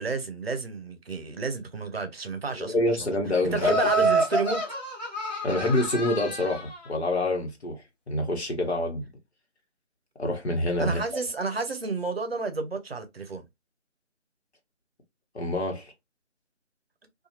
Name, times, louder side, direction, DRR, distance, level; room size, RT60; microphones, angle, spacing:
voice 1, 0.0-3.2 3.4-4.6 10.8-13.4, right 4 dB, 55° right, 0.7 m, -31 dB
voice 2, 2.6-4.0 5.4-7.8 8.1-9.1 10.2-11.0 15.3-15.9, left 1 dB, 60° left, 1.1 m, -27 dB
Laughter, 3.6-6.8, right 2 dB, 35° left, 1.1 m, -27 dB
2.7 x 2.3 x 2.7 m
figure-of-eight pair, 155°, 37 cm